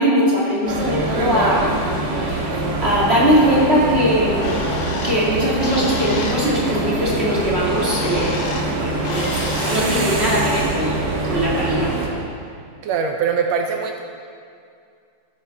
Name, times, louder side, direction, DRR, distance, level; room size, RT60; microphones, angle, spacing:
voice 1, 0.0-4.5 5.0-8.4 8.8-12.0, equal, 20° right, -6 dB, 2.1 m, -20 dB
sound 1, 0.7-12.1, right 2 dB, 50° right, 1.1 m, -24 dB
Bird, 4.1-10.0, left 4 dB, 65° left, 2.0 m, -32 dB
voice 2, 12.8-14.0, right 6 dB, 75° right, 3 dB, 1.6 m, -22 dB
14.0 x 11.0 x 3.5 m, 2.3 s
omnidirectional pair, 3.7 m